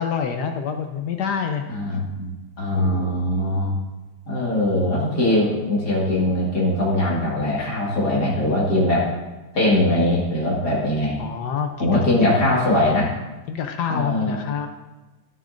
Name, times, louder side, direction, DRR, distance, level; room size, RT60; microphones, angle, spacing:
voice 1, 0.0-1.6 2.7-3.2 11.2-12.3 13.5-14.7, left 7 dB, 65° left, 5 dB, 1.0 m, -27 dB
voice 2, 1.7-3.8 4.3-9.1 9.5-11.2 11.8-13.1 13.9-14.4, left 1 dB, 50° left, -4 dB, 2.5 m, -21 dB
14.5 x 6.6 x 2.6 m, 1.1 s
omnidirectional pair, 2.4 m